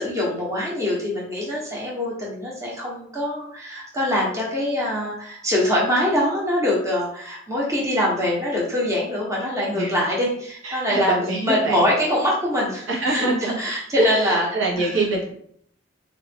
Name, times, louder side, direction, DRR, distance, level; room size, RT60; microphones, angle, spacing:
voice 1, 0.0-14.5 14.8-15.0, left 1 dB, 15° right, -4 dB, 0.8 m, -24 dB
voice 2, 10.6-11.8 12.9-13.5 14.0-15.3, right 2 dB, 80° right, -2 dB, 1.1 m, -24 dB
3.7 x 2.4 x 3.4 m, 0.65 s
head